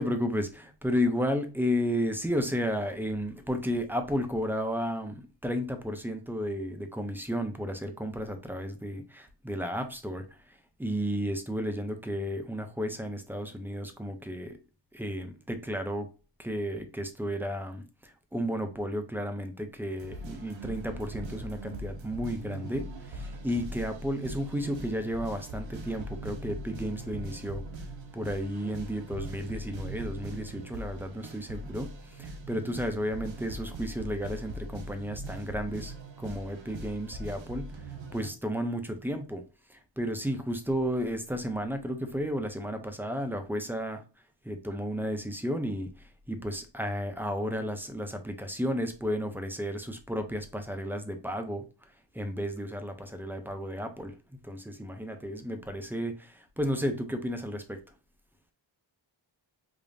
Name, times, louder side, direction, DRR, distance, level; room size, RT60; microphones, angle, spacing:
voice 1, 0.0-14.6 14.9-16.1 16.4-27.6 28.1-37.7 38.1-39.4 39.7-44.0 44.4-45.9 46.3-51.6 52.1-54.2 54.4-57.8, equal, 5° right, 0.4 m, -33 dB
sound 1, 20.0-38.3, right 1 dB, 70° right, 0.8 m, -41 dB
5.0 x 2.4 x 2.6 m
wide cardioid pair, 125°, 47 cm